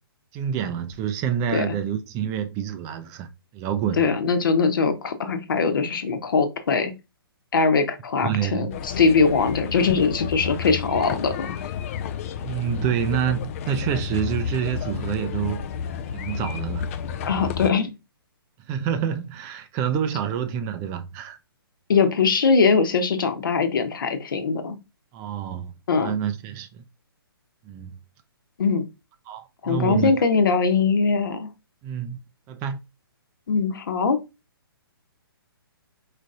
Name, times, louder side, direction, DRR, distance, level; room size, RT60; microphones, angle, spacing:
voice 1, 0.3-3.3 3.5-4.0 8.2-8.7 12.4-15.7 16.1-16.8 18.7-21.4 25.1-25.7 26.0-26.8 27.7-27.9 29.3-30.2 31.8-32.2 32.5-32.8, right 8 dB, 25° right, 0.5 m, -27 dB
voice 2, 3.9-6.9 7.5-11.6 17.3-17.9 21.9-24.8 25.9-26.2 28.6-28.9 29.6-31.5 33.5-34.2, left 5 dB, 60° left, 1.1 m, -21 dB
sound 1, 8.7-17.7, left 7 dB, 35° left, 0.5 m, -31 dB
4.9 x 4.2 x 2.5 m
figure-of-eight pair, 125°, 13 cm